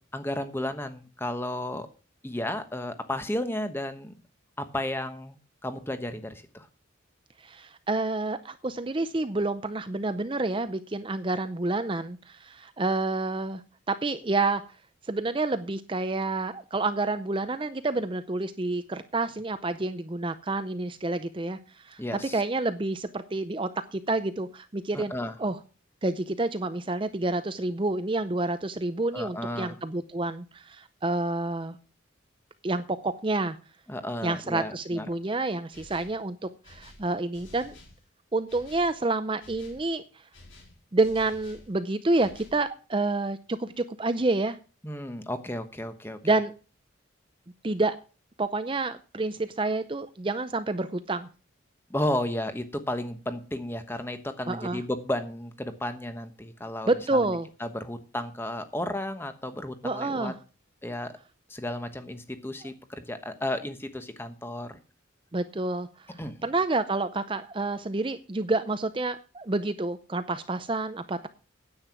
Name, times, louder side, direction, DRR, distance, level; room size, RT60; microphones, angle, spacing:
voice 1, 0.1-1.9 2.2-4.1 4.6-5.4 5.6-6.7 22.0-22.4 24.9-25.4 29.1-29.8 33.9-35.1 44.8-46.4 51.9-60.3 60.8-61.1 61.5-64.8 66.1-66.3, left 1 dB, 10° left, 9 dB, 1.1 m, -33 dB
voice 2, 7.4-13.6 13.9-14.6 15.0-22.0 22.3-25.1 25.4-25.6 26.0-31.8 32.6-33.6 34.2-37.8 38.3-40.0 40.9-44.6 46.2-46.5 47.6-48.0 48.4-51.3 54.5-54.8 56.9-57.5 59.8-60.4 62.6-62.7 65.3-71.3, right 2 dB, 25° right, 11 dB, 0.5 m, -29 dB
sound 1, 35.7-36.2 36.6-38.0 38.5-38.9 39.4-39.9 40.3-41.7 42.2-42.6, left 2 dB, 70° left, 4.9 m, -51 dB
9.9 x 8.7 x 6.0 m, 0.35 s
head